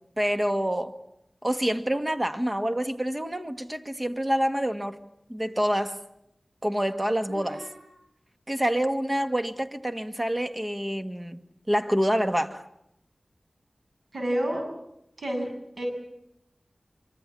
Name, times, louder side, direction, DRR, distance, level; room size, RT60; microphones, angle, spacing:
voice 1, 0.2-1.0 1.4-5.0 5.3-6.0 6.6-7.6 8.5-12.6, equal, 20° right, 1.9 m, -27 dB
voice 2, 7.3-7.8 14.1-14.7 15.2-15.5 15.8-15.9, equal, 85° right, 7.9 m, -30 dB
26.0 x 24.5 x 8.7 m
wide cardioid pair, 60°, 0 cm